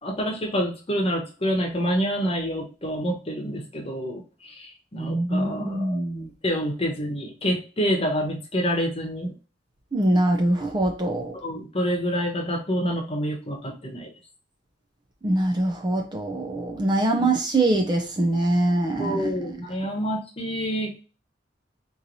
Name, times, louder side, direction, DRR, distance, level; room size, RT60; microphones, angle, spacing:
voice 1, 0.0-6.0 6.4-9.3 11.3-14.1 19.0-21.0, equal, 30° left, 0 dB, 1.0 m, -27 dB
voice 2, 5.0-6.3 9.9-11.4 15.2-19.6, right 1 dB, 25° right, 3 dB, 0.4 m, -23 dB
4.0 x 3.0 x 2.6 m, 0.35 s
head